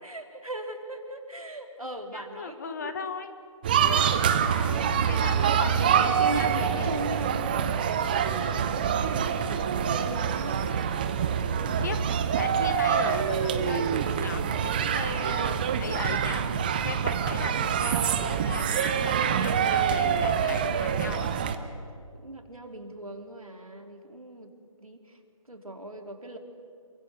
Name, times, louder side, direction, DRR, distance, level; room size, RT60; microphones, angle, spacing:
voice 1, 0.0-2.9 4.3-5.2 5.4-10.7 11.6-12.1 22.1-24.5 24.8-25.2 25.5-26.4, right 2 dB, 80° right, 4 dB, 3.5 m, -39 dB
voice 2, 2.1-3.3 3.8-4.0 5.1-6.9 11.8-12.0 12.4-16.5 16.8-21.3, left 5 dB, 30° left, 9 dB, 1.4 m, -38 dB
sound 1, 3.6-21.6, right 7 dB, 15° right, 0.7 m, -26 dB
28.0 x 23.5 x 7.0 m, 2.3 s
figure-of-eight pair, 150°, 18 cm